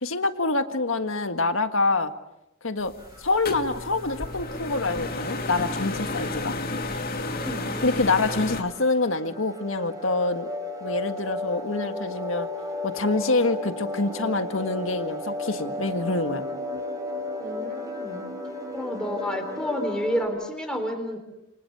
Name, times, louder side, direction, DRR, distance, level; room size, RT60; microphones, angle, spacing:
voice 1, 0.0-2.1 2.6-2.9 3.2-6.6 7.8-10.5 10.8-12.5 12.8-16.4, left 3 dB, 80° left, 8 dB, 1.8 m, -26 dB
sound 1, 2.8-8.6, left 2 dB, 50° left, 2.3 m, -32 dB
sound 2, 3.0-20.2, left 2 dB, 20° right, 4.6 m, -35 dB
voice 2, 7.4-7.8 17.4-18.2 18.7-21.2, equal, 5° left, 4 dB, 4.1 m, -30 dB
29.0 x 24.5 x 7.0 m, 0.89 s
head